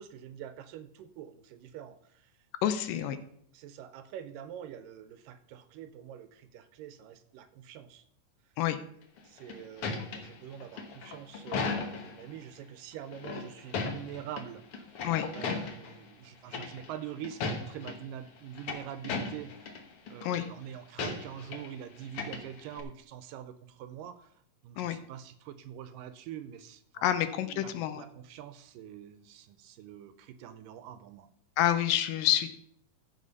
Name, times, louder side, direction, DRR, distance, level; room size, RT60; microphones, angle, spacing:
voice 1, 0.0-2.3 2.9-3.2 3.5-8.0 9.2-15.1 15.3-19.8 20.1-24.3 24.6-27.2 27.5-31.3, right 10 dB, 80° right, 12 dB, 2.2 m, -45 dB
voice 2, 2.6-3.2 8.6-8.8 15.0-15.3 20.2-20.5 24.8-25.0 27.0-28.0 31.6-32.5, left 11 dB, 80° left, 10 dB, 2.3 m, -28 dB
sound 1, 9.2-12.2 13.1-14.4 14.7-16.0 16.5-17.0 17.2-17.9 18.4-19.8 20.1-20.4 21.0-21.7 22.0-22.8, left 4 dB, 60° left, 1.6 m, -36 dB
15.0 x 5.1 x 5.4 m, 0.65 s
omnidirectional pair, 4.1 m